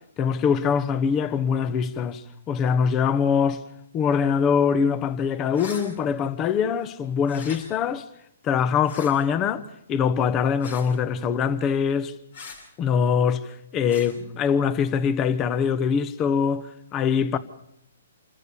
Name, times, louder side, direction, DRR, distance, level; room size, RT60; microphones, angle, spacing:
voice 1, 0.2-2.2 2.5-3.6 3.9-8.0 8.4-9.6 9.9-12.1 12.8-17.4, left 7 dB, 25° left, 1.0 m, -23 dB
sound 1, 5.5-5.8 7.2-7.6 8.8-9.1 10.6-10.9 12.3-12.6 13.9-14.1, left 5 dB, 65° left, 7.3 m, -40 dB
27.0 x 14.0 x 6.8 m
hypercardioid pair, 145°, 0 cm